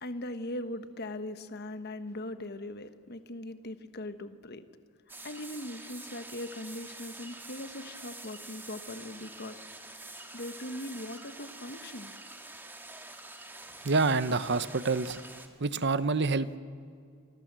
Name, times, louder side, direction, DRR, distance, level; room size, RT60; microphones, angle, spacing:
voice 1, 0.0-4.6 5.2-9.6 10.3-12.1, left 1 dB, 45° left, 10 dB, 1.3 m, -40 dB
sound 1, 5.1-15.5, right 2 dB, 10° right, 1.8 m, -46 dB
voice 2, 13.8-15.2 15.6-16.6, right 3 dB, 50° right, 14 dB, 0.9 m, -27 dB
29.5 x 24.0 x 7.6 m, 2.2 s
head